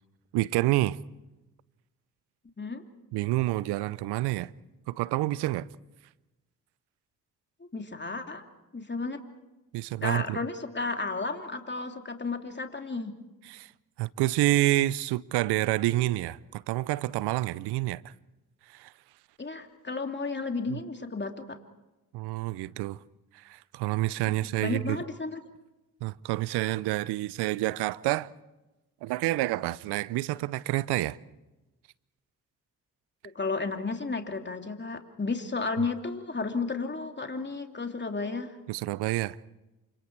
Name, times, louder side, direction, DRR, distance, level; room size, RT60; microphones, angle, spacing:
voice 1, 0.3-1.0 3.1-4.5 4.9-5.7 9.7-10.4 13.5-13.7 14.0-18.1 18.7-18.9 20.7-20.8 22.1-23.0 23.3-25.0 26.0-28.3 29.0-31.2 38.7-39.4, right 17 dB, 75° right, 0.7 m, -28 dB
voice 2, 7.6-8.5 8.7-9.2 10.0-13.2 19.4-21.6 24.3-25.4 33.2-38.6, left 3 dB, 25° left, 2.9 m, -33 dB
28.5 x 25.5 x 4.7 m
hypercardioid pair, 45°, 40 cm